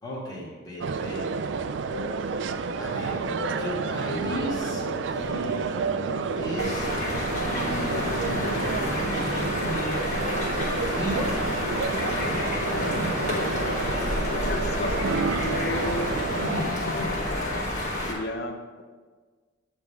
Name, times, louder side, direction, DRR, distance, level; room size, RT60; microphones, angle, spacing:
voice 1, 0.0-1.6 2.1-2.2 2.8-3.2 3.6-5.7 6.3-6.9 7.4-10.1 10.7-11.3, equal, 20° left, -6 dB, 1.6 m, -36 dB
sound 1, 0.8-16.6, right 5 dB, 60° right, 0.3 m, -30 dB
sound 2, 1.9-17.6, left 1 dB, 80° left, 0.9 m, -35 dB
sound 3, 6.6-18.1, left 1 dB, 35° left, 1.4 m, -30 dB
voice 2, 13.8-17.2 17.9-18.8, left 2 dB, 50° left, 6 dB, 0.6 m, -35 dB
8.9 x 3.5 x 5.5 m, 1.4 s
head